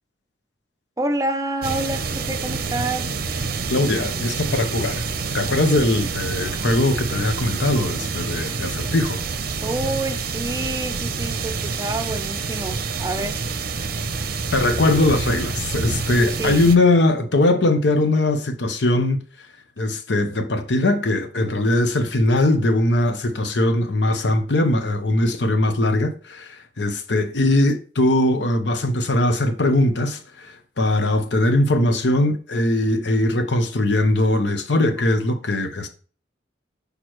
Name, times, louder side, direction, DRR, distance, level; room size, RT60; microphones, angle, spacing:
voice 1, 1.0-3.1 9.6-13.4 16.2-16.6, right 2 dB, 20° right, 0.6 m, -28 dB
sound 1, 1.6-16.8, right 4 dB, 55° right, 0.7 m, -27 dB
voice 2, 3.7-5.1 5.3-9.2 14.5-19.2 19.8-35.9, left 1 dB, 80° left, 0.9 m, -20 dB
6.4 x 5.1 x 3.1 m
head